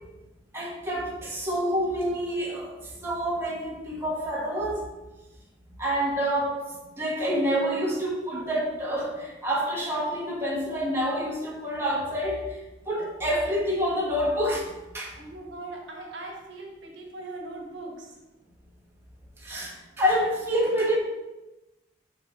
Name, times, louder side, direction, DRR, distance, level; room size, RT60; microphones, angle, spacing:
voice 1, 0.5-2.7 3.0-4.8 5.8-6.6 7.0-12.6 12.8-15.1 19.4-21.0, equal, 15° right, -4 dB, 1.4 m, -27 dB
voice 2, 15.2-18.1 20.6-20.8, right 2 dB, 70° right, 0 dB, 1.4 m, -40 dB
6.8 x 3.9 x 5.4 m, 1.0 s
head